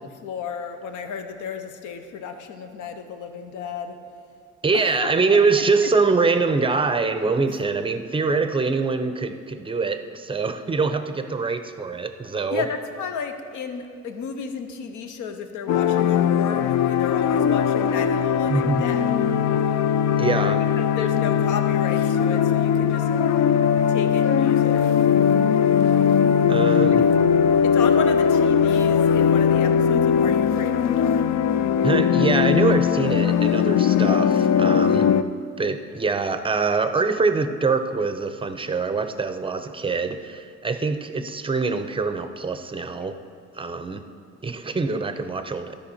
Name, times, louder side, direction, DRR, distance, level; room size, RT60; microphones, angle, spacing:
voice 1, 0.2-4.0 5.0-5.4 12.5-19.1 20.7-23.1 23.9-24.8 26.9-27.1 27.6-31.2, left 6 dB, 80° left, 7 dB, 0.8 m, -33 dB
voice 2, 4.6-12.6 18.5-18.8 20.2-20.7 26.5-27.0 31.8-35.1 35.6-43.2 43.5-44.0 44.4-45.7, right 4 dB, 20° right, 9 dB, 0.5 m, -24 dB
sound 1, 15.7-35.2, left 8 dB, 65° left, 0.4 m, -19 dB
12.5 x 5.1 x 4.3 m, 2.2 s
cardioid pair, 90°, 30 cm